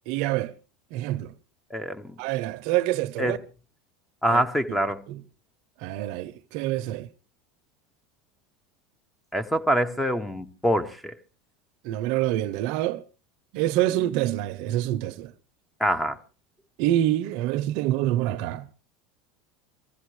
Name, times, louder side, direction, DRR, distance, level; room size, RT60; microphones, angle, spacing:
voice 1, 0.1-0.5 0.9-1.3 2.2-3.4 4.3-4.4 5.1-5.2 5.8-7.1 11.8-13.0 13.5-15.3 16.8-18.7, right 14 dB, 65° right, 0.7 m, -26 dB
voice 2, 1.7-2.1 3.2-3.4 4.2-5.0 9.3-11.1 15.8-16.2, equal, 5° left, 0.9 m, -25 dB
23.5 x 15.5 x 3.2 m
supercardioid pair, 125°, 0 cm